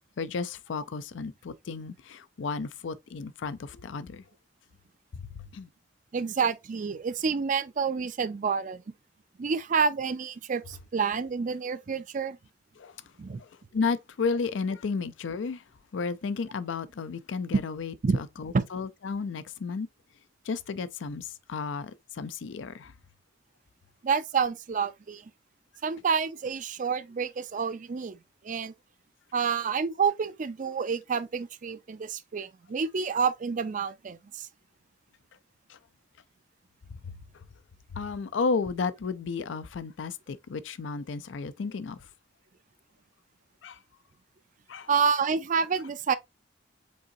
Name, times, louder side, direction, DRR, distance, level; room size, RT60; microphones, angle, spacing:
voice 1, 0.2-4.2 5.2-5.7 12.8-13.0 13.4-15.6 15.9-19.9 20.4-22.9 35.7-35.8 36.9-37.4 37.9-42.1 43.6-43.8 44.7-44.9, left 4 dB, 70° left, 0.4 m, -33 dB
voice 2, 6.1-8.8 9.4-12.4 13.2-13.4 17.5-17.6 18.0-18.2 18.5-18.7 24.0-25.3 25.8-28.7 29.3-34.5 44.9-46.1, right 5 dB, 40° right, 0.4 m, -28 dB
5.3 x 3.8 x 2.6 m
head